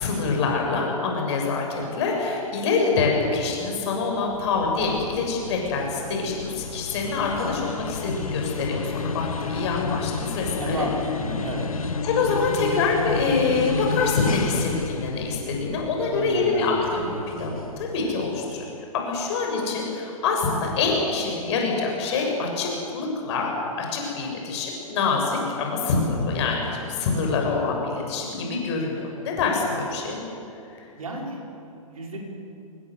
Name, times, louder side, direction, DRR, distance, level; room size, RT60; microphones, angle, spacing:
voice 1, 0.0-10.9 12.0-18.7 18.9-30.2, left 4 dB, 50° left, 0 dB, 7.1 m, -25 dB
sound 1, 4.2-18.7, left 4 dB, 70° left, 1.6 m, -32 dB
voice 2, 10.6-11.7 16.1-17.4 31.0-32.2, right 1 dB, 70° right, -1 dB, 5.4 m, -32 dB
26.5 x 19.5 x 8.1 m, 2.7 s
figure-of-eight pair, 110°, 19 cm